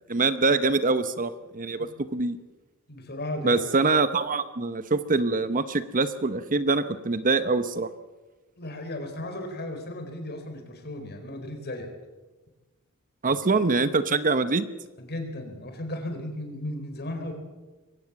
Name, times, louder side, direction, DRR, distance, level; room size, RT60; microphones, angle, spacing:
voice 1, 0.1-2.4 3.4-7.9 13.2-14.7, right 3 dB, 40° right, 12 dB, 0.9 m, -24 dB
voice 2, 2.9-3.6 8.6-11.9 13.3-13.4 15.0-17.3, left 1 dB, 50° left, 5 dB, 4.4 m, -35 dB
22.5 x 17.5 x 7.2 m, 1.2 s
head